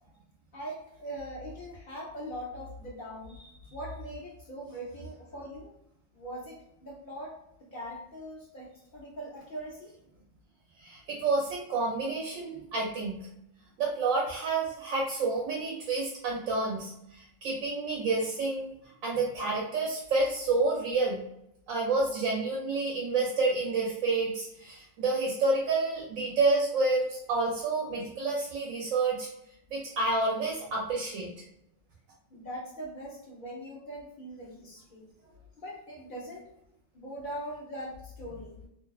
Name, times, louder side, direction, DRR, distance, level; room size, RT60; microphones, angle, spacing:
voice 1, 0.5-3.4 3.7-5.7 6.1-7.4 7.7-9.9 32.3-35.1 35.6-36.5 36.9-38.6, equal, 55° left, -3 dB, 0.6 m, -41 dB
voice 2, 10.8-13.3 13.8-18.7 19.0-21.2 21.7-29.3 29.7-31.3, right 3 dB, 80° right, -2 dB, 1.0 m, -29 dB
2.6 x 2.1 x 2.3 m, 0.79 s
omnidirectional pair, 1.4 m